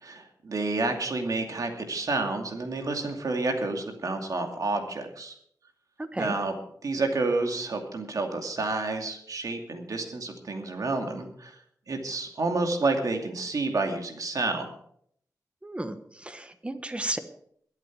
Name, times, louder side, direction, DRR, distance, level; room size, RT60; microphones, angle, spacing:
voice 1, 0.0-5.3 6.1-6.6 6.8-11.6 11.9-14.7, right 3 dB, 65° right, 4 dB, 2.5 m, -29 dB
voice 2, 15.6-16.0 16.2-17.2, right 1 dB, 20° right, 9 dB, 1.3 m, -33 dB
22.5 x 8.2 x 4.8 m, 0.66 s
wide cardioid pair, 100°, 6 cm